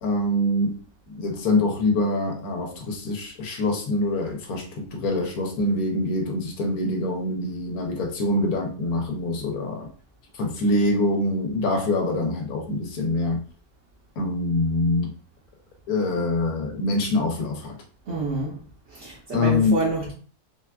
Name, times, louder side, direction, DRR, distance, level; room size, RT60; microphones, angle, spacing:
voice 1, 0.0-0.8 1.1-9.9 10.4-13.4 14.2-15.1 15.9-17.8 19.3-19.8, left 2 dB, 85° left, 1.2 m, -24 dB
voice 2, 18.1-18.6 18.9-20.1, right 3 dB, 60° right, 0.9 m, -28 dB
3.8 x 2.3 x 2.2 m
omnidirectional pair, 1.5 m